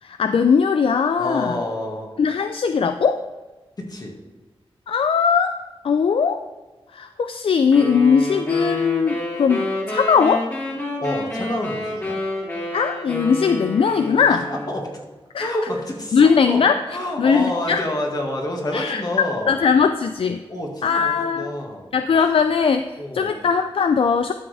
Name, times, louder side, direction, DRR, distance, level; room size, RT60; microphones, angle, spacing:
voice 1, 0.0-1.6 2.2-3.2 4.9-5.6 5.8-6.4 6.9-10.5 12.7-14.4 15.3-15.5 16.1-16.8 17.2-17.8 18.7-20.4 20.8-21.5 21.9-24.3, left 6 dB, 65° left, 8 dB, 0.4 m, -19 dB
voice 2, 1.2-2.1 3.9-4.1 11.0-12.2 14.3-14.8 15.4-16.6 16.9-19.5 20.5-21.9 23.0-23.4, left 1 dB, 40° left, 0 dB, 2.0 m, -28 dB
sound 1, 7.7-14.9, left 1 dB, 25° left, 2.9 m, -29 dB
12.5 x 6.2 x 3.4 m, 1.2 s
wide cardioid pair, 80°, 10 cm